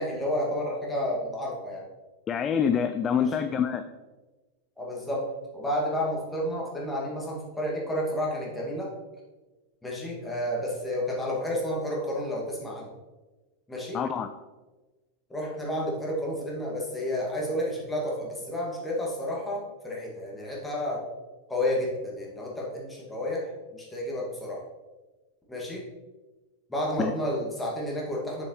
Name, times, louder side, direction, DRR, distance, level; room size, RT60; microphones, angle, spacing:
voice 1, 0.0-1.9 3.1-3.5 4.8-5.3 5.5-8.9 9.8-12.9 13.7-14.0 15.3-21.0 21.5-24.6 25.5-25.8 26.7-28.5, left 1 dB, 10° left, -4 dB, 2.1 m, -31 dB
voice 2, 2.3-3.8 13.9-14.3 27.0-27.1, left 7 dB, 25° left, 8 dB, 0.4 m, -26 dB
6.9 x 6.8 x 3.2 m, 1.2 s
figure-of-eight pair, 90°, 0 cm